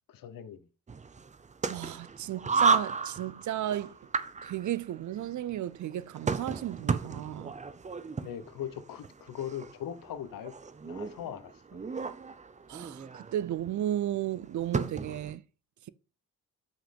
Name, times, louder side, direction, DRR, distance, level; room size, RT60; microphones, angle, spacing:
voice 1, 0.1-0.7 8.2-10.5 10.8-11.8, left 10 dB, 75° left, 1.0 m, -40 dB
sound 1, 0.9-15.3, right 5 dB, 20° right, 0.6 m, -34 dB
voice 2, 1.7-4.0 4.4-7.5 12.7-15.4, right 12 dB, 60° right, 0.6 m, -34 dB
7.6 x 6.0 x 5.3 m
cardioid pair, 145°, 33 cm